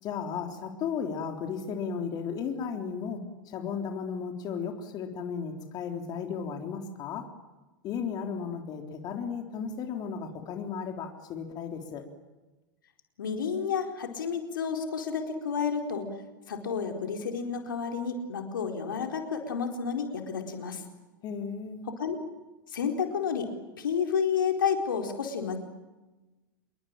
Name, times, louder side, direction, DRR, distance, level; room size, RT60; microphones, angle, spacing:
voice 1, 0.0-7.3 7.8-12.0 21.2-21.9, left 6 dB, 35° left, 4 dB, 3.8 m, -35 dB
voice 2, 13.2-16.1 16.5-20.8 21.9-22.2 22.7-23.5 23.8-25.6, left 6 dB, 70° left, 4 dB, 4.3 m, -30 dB
28.0 x 22.5 x 9.0 m, 1.1 s
hypercardioid pair, 100°, 11 cm